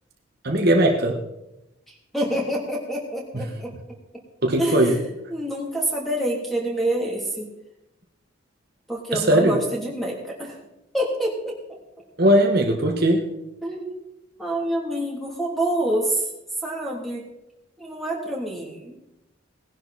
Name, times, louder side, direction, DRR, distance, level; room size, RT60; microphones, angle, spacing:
voice 1, 0.4-1.2 4.4-4.9 9.1-9.6 12.2-13.3, right 1 dB, 50° right, 2 dB, 1.5 m, -19 dB
voice 2, 2.1-3.7 4.6-4.9 5.3-7.5 8.9-10.6 10.9-11.8 13.6-14.0 14.4-16.3 16.6-17.3 17.8-18.9, right 1 dB, ahead, -2 dB, 3.0 m, -27 dB
18.5 x 11.0 x 4.2 m, 0.92 s
head